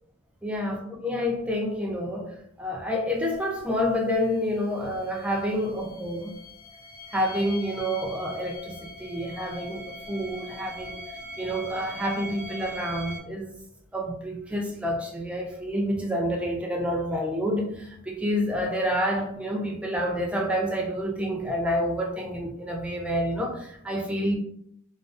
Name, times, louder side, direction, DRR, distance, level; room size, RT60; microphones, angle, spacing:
voice 1, 0.4-6.3 7.1-11.0 11.4-13.5 13.9-24.4, equal, 5° right, 0.3 m, -28 dB
sound 1, 3.6-3.7 4.1-13.2, left 1 dB, 70° left, 0.9 m, -42 dB
2.4 x 2.2 x 2.4 m
head